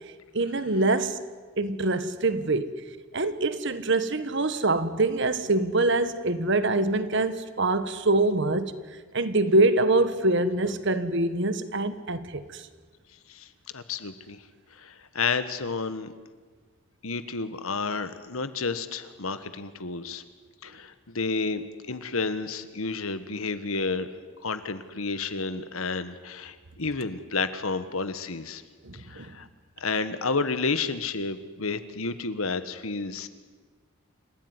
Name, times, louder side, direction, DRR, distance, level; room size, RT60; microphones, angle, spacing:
voice 1, 0.3-1.2 1.6-2.7 3.1-8.7 9.1-12.6 28.8-29.3, right 2 dB, 55° right, 1.4 m, -24 dB
voice 2, 13.3-14.4 14.7-16.1 17.0-20.2 20.6-24.1 24.4-28.6 28.9-29.5 29.8-33.3, left 4 dB, 75° left, 1.5 m, -31 dB
28.5 x 15.5 x 9.7 m
head